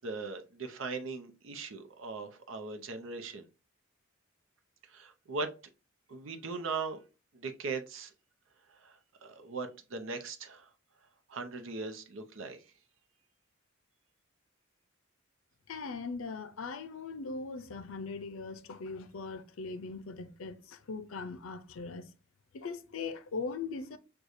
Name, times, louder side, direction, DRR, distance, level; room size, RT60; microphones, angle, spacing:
voice 1, 0.0-3.5 4.9-5.5 6.1-7.0 7.3-8.1 8.7-10.7 11.3-12.7, right 4 dB, 70° right, 0.6 m, -39 dB
voice 2, 15.7-22.1 22.5-24.0, left 4 dB, 80° left, 0.5 m, -40 dB
6.3 x 2.3 x 2.6 m
head